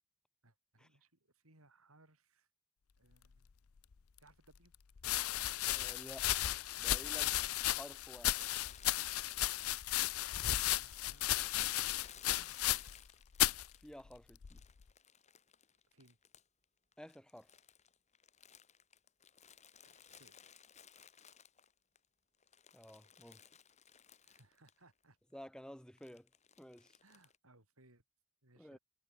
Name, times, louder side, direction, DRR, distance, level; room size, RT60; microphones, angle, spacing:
voice 1, 0.4-2.5 3.0-3.5 4.2-4.7 8.6-8.8 9.6-9.8 10.3-11.4 12.0-12.7 15.9-16.2 19.8-20.4 24.2-25.2 27.0-28.0 28.4-28.8, right 2 dB, 85° right, 5.6 m, -67 dB
sound 1, 3.9-4.0 5.0-13.1 13.3-13.7 14.4-14.8, left 14 dB, 90° left, 0.6 m, -34 dB
voice 2, 5.6-6.3 6.8-7.4 7.7-8.5 13.8-14.6 17.0-17.5 22.7-23.4 25.3-26.3 26.6-27.0 28.6-28.8, equal, 5° left, 1.7 m, -52 dB
Crumpling crinkling, 8.3-14.0 14.5-16.6 16.9-22.0 22.3-24.8 25.0-25.1 26.0-27.4, left 8 dB, 30° left, 2.3 m, -60 dB
head